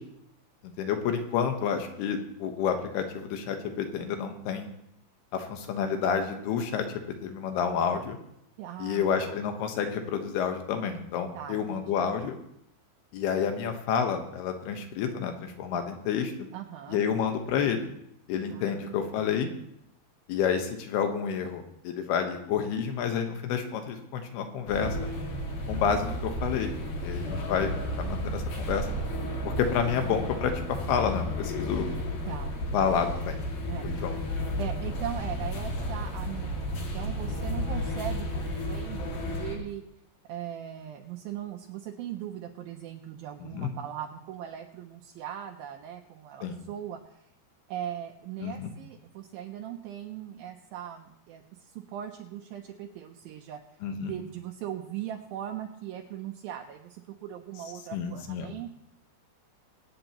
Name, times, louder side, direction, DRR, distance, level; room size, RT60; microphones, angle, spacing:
voice 1, 0.6-4.7 5.3-8.2 8.8-12.4 13.1-16.3 16.9-17.9 18.3-19.5 20.3-25.1 25.7-27.7 28.0-28.9 29.4-31.9 32.7-33.4 33.8-34.1 43.4-43.7 46.4-46.6 48.4-48.7 53.8-54.1 57.9-58.5, left 7 dB, 75° left, 5 dB, 3.0 m, -29 dB
voice 2, 8.6-9.4 11.3-11.9 15.7-15.8 16.5-17.0 18.5-19.1 27.2-27.6 32.3-32.5 33.7-34.1 34.6-39.8 40.3-47.2 47.7-53.6 54.0-58.7, right 10 dB, 80° right, 3 dB, 2.2 m, -39 dB
sound 1, 24.7-39.6, equal, 55° left, 3.3 m, -32 dB
24.5 x 9.0 x 3.0 m, 0.77 s
omnidirectional pair, 4.9 m